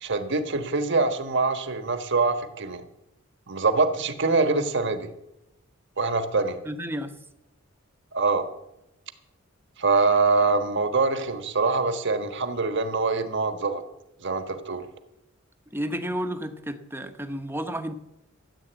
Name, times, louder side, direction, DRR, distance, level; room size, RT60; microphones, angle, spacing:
voice 1, 0.0-2.8 3.5-5.1 6.0-6.6 8.1-8.5 9.8-13.8 14.2-14.8, right 3 dB, 60° right, 8 dB, 1.4 m, -24 dB
voice 2, 6.6-7.2 15.7-17.9, equal, 10° right, 8 dB, 1.0 m, -31 dB
14.0 x 8.6 x 8.1 m, 0.89 s
head